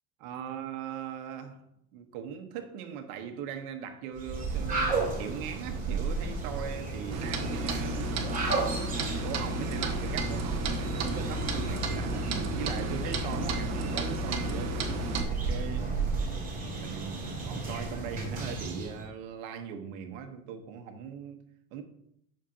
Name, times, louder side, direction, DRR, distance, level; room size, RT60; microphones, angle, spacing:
voice 1, 0.2-1.6 1.9-8.2 9.0-15.9 16.8-21.8, right 8 dB, 75° right, 6 dB, 1.3 m, -40 dB
sound 1, 4.1-19.0, right 3 dB, 20° right, 3.3 m, -34 dB
Clock, 7.1-15.2, right 1 dB, 40° right, 1.2 m, -32 dB
10.5 x 6.7 x 2.8 m, 0.75 s
cardioid pair, 130°, 41 cm